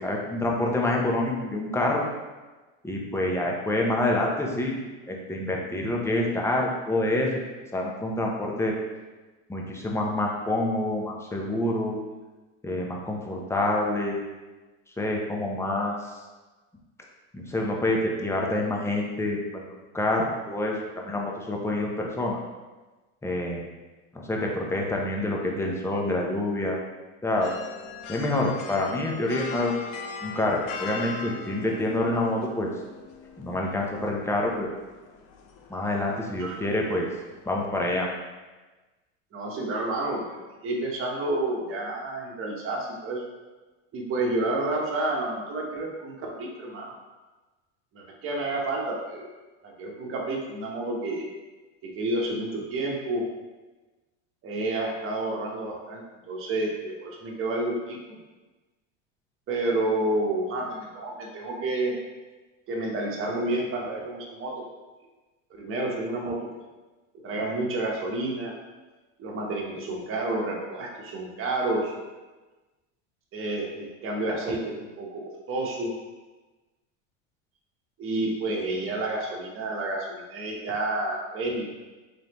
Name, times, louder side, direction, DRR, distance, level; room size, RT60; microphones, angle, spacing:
voice 1, 0.0-2.1 2.8-4.8 5.1-7.3 7.7-8.8 9.5-12.0 12.6-14.3 15.0-16.0 17.3-19.7 19.9-22.4 23.2-23.7 24.1-26.8 27.2-27.5 28.1-29.7 30.2-32.7 33.4-34.7 35.7-37.1 37.5-38.1, left 1 dB, 5° left, -1 dB, 0.6 m, -27 dB
sound 1, 27.4-37.7, left 4 dB, 75° left, 0.6 m, -41 dB
voice 2, 39.3-40.2 40.6-43.2 43.9-46.9 47.9-49.3 49.6-51.2 51.8-53.3 54.4-58.2 59.5-61.9 62.7-64.5 65.5-66.4 67.2-68.5 69.2-71.9 73.3-75.9 78.0-81.7, right 2 dB, 35° right, -2 dB, 1.0 m, -30 dB
4.1 x 3.3 x 2.9 m, 1.2 s
supercardioid pair, 105°, 37 cm